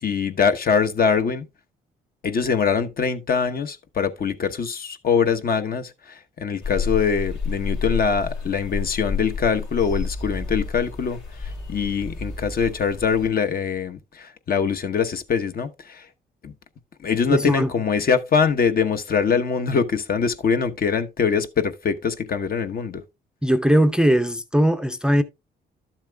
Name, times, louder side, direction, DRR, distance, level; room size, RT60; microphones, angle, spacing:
voice 1, 0.0-1.5 2.2-16.1 16.4-16.5 17.0-23.0, left 6 dB, 50° left, 1.0 m, -23 dB
sound 1, 6.6-13.3, left 5 dB, 70° left, 2.9 m, -30 dB
voice 2, 17.3-17.7 23.4-25.2, equal, 5° right, 0.5 m, -19 dB
12.0 x 7.3 x 2.2 m
cardioid pair, 90°, 20 cm